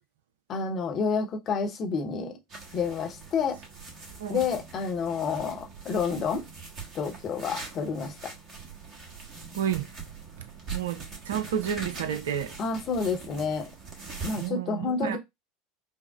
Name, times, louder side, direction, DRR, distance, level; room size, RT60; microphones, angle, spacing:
voice 1, 0.5-2.4 2.7-3.6 4.3-6.4 6.9-8.3 12.6-13.7 14.2-15.2, left 5 dB, 35° left, 0.9 m, -29 dB
sound 1, 2.5-14.5, right 4 dB, 40° right, 1.3 m, -42 dB
voice 2, 9.5-9.9 10.4-12.6 14.4-15.2, right 9 dB, 65° right, 0.5 m, -31 dB
5.4 x 2.0 x 2.3 m
figure-of-eight pair, 75°, 0 cm